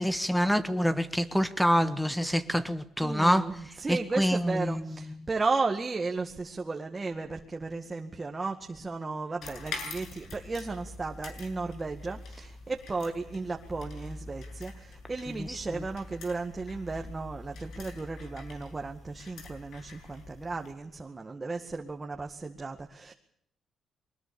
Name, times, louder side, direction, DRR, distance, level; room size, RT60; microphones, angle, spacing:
voice 1, 0.0-5.3 15.3-15.8, equal, 5° left, 12 dB, 1.5 m, -27 dB
voice 2, 3.0-23.1, right 3 dB, 25° right, 3 dB, 2.0 m, -34 dB
sound 1, 9.4-20.7, left 3 dB, 70° left, 7.2 m, -44 dB
23.0 x 20.5 x 7.1 m, 0.72 s
cardioid pair, 90°, 0 cm